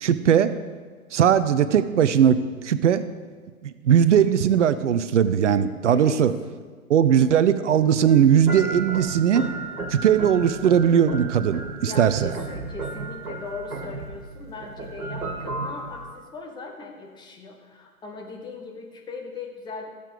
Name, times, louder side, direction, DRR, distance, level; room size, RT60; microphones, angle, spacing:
voice 1, 0.0-0.5 1.1-3.0 3.6-6.3 6.9-9.4 9.9-12.3, right 8 dB, 55° right, 13 dB, 0.7 m, -19 dB
voice 2, 5.9-6.2 11.8-19.9, left 4 dB, 10° left, 2 dB, 0.9 m, -39 dB
sound 1, 8.1-16.2, right 3 dB, 75° right, 1.9 m, -34 dB
15.0 x 6.9 x 5.1 m, 1.5 s
figure-of-eight pair, 120°, 44 cm